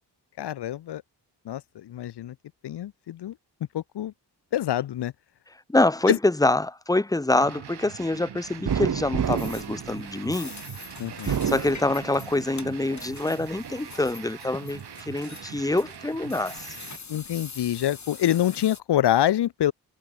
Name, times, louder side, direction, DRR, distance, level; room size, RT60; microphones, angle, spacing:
voice 1, 0.4-1.0 1.4-2.3 2.6-3.3 3.7-4.1 4.5-5.1 6.1-6.2 11.0-11.4 17.1-19.7, left 12 dB, 75° left, 0.9 m, -26 dB
voice 2, 5.7-10.5 11.2-16.7, left 2 dB, 10° left, 1.0 m, -25 dB
sound 1, 7.4-17.0, right 9 dB, 70° right, 3.1 m, -43 dB
sound 2, 8.6-10.6 11.1-12.4 12.9-13.8, right 7 dB, 50° right, 1.5 m, -29 dB
sound 3, 9.2-18.8, left 5 dB, 45° left, 6.7 m, -44 dB
open air
cardioid pair, 80°, 40 cm